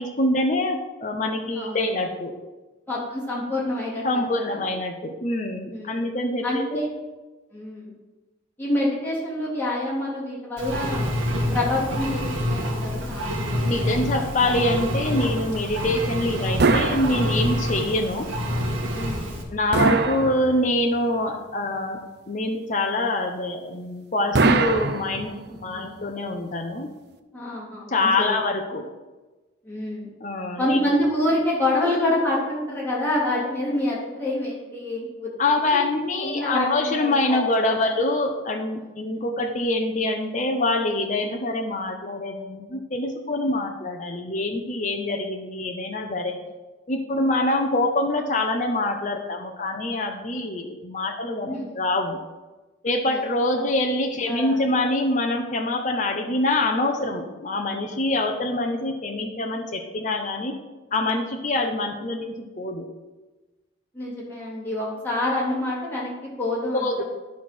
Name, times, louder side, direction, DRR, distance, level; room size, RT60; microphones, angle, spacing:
voice 1, 0.0-2.3 4.0-6.6 13.6-18.3 19.5-22.0 22.3-25.3 25.6-26.9 27.9-28.9 30.2-30.8 35.4-46.3 46.9-52.2 52.8-60.5 60.9-62.9 66.8-67.0, left 2 dB, 40° left, 2 dB, 0.7 m, -25 dB
voice 2, 2.9-4.6 5.7-6.0 6.4-6.9 7.5-7.9 8.6-11.2 11.5-12.2 12.5-14.2 15.2-15.3 18.9-19.3 25.5-25.9 27.3-28.4 29.6-30.1 30.6-35.3 35.7-35.9 36.2-37.4 37.7-37.9 38.8-38.9 51.4-51.7 53.1-53.2 53.6-53.7 54.3-54.7 63.9-66.9, left 1 dB, 10° left, -8 dB, 3.0 m, -27 dB
Engine, 10.6-19.4, equal, 85° right, 1.7 m, -27 dB
sound 1, 16.6-17.8 19.7-21.0 24.3-25.6, right 3 dB, 55° right, 0.6 m, -22 dB
10.5 x 4.3 x 6.1 m, 1.2 s
head